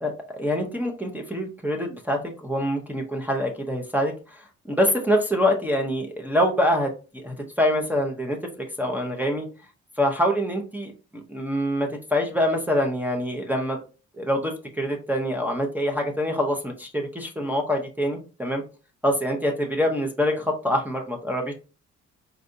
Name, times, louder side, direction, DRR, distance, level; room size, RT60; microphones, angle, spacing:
voice 1, 0.0-9.5 10.0-13.8 14.2-18.6 19.0-21.5, equal, 5° right, 0 dB, 0.7 m, -25 dB
4.4 x 2.5 x 2.6 m, 0.34 s
cardioid pair, 90°, 30 cm